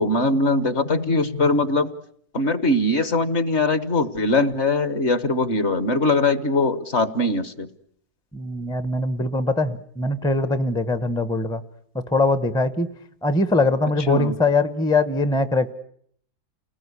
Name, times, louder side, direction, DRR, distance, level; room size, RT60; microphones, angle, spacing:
voice 1, 0.0-1.9 2.3-7.7 14.1-14.3, left 2 dB, 45° left, 13 dB, 1.5 m, -21 dB
voice 2, 8.3-11.6 12.1-12.9 13.2-15.7, left 2 dB, 5° left, 12 dB, 0.8 m, -22 dB
30.0 x 20.0 x 9.8 m, 0.67 s
omnidirectional pair, 1.7 m